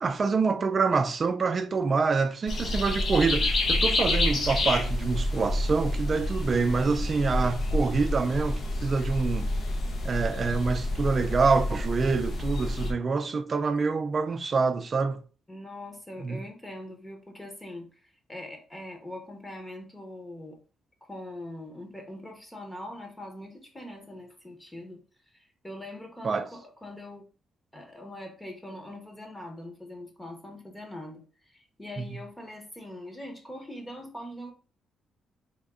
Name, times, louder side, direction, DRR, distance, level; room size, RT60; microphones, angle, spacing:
voice 1, 0.0-9.5 10.0-15.2 16.2-16.4 26.2-26.5 32.0-32.2, right 4 dB, 40° right, 0.4 m, -26 dB
sound 1, 2.5-12.9, left 1 dB, 55° left, 0.8 m, -28 dB
voice 2, 15.5-17.9 18.3-20.6 21.0-25.0 25.6-27.2 27.7-31.2 31.5-34.5, left 1 dB, 15° left, 1.0 m, -42 dB
3.5 x 2.3 x 3.6 m
cardioid pair, 90°, 0 cm